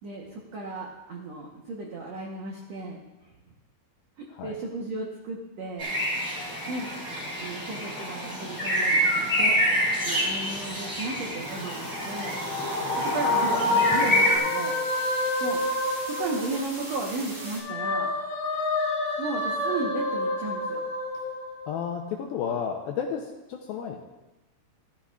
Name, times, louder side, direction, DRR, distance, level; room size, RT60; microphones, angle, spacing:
voice 1, 0.0-3.1 4.2-5.9 6.7-6.9 7.4-9.6 10.0-12.4 13.0-14.8 15.4-15.6 16.1-18.1 19.2-20.8, right 2 dB, 85° right, -2 dB, 1.5 m, -35 dB
June night, 5.8-14.4, equal, 5° right, 1.7 m, -27 dB
sound 1, 11.4-17.6, right 1 dB, 50° right, 6.2 m, -42 dB
sound 2, 11.9-16.9 17.3-22.1, left 2 dB, 40° left, 3.5 m, -28 dB
voice 2, 21.7-24.0, left 7 dB, 80° left, 2 dB, 2.3 m, -32 dB
14.5 x 13.5 x 2.4 m, 1.1 s
omnidirectional pair, 4.8 m